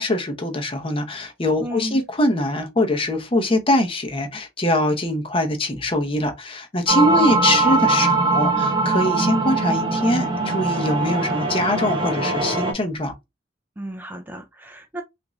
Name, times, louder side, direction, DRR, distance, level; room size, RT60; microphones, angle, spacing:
voice 1, 0.0-13.1, left 1 dB, 30° left, 0.7 m, -23 dB
voice 2, 1.6-2.0 7.1-7.5 13.8-15.0, right 1 dB, 10° right, 0.4 m, -33 dB
sound 1, 6.9-12.7, right 3 dB, 25° right, 0.9 m, -21 dB
3.6 x 2.5 x 3.0 m
head